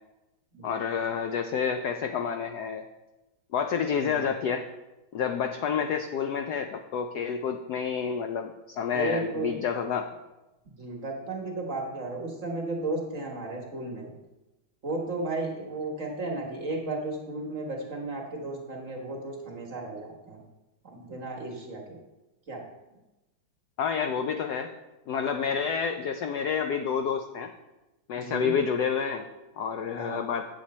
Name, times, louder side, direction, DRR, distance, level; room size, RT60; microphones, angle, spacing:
voice 1, 0.6-2.8 3.5-4.6 5.1-10.1 23.8-24.7 25.1-27.5 28.1-29.2 29.6-30.5, left 6 dB, 85° left, 6 dB, 0.8 m, -29 dB
voice 2, 8.9-9.5 10.8-14.1 14.8-20.4 20.8-22.0 22.5-22.6 28.1-28.5 29.9-30.2, right 2 dB, 40° right, 0 dB, 1.5 m, -34 dB
8.7 x 7.7 x 4.2 m, 1.0 s
omnidirectional pair, 2.4 m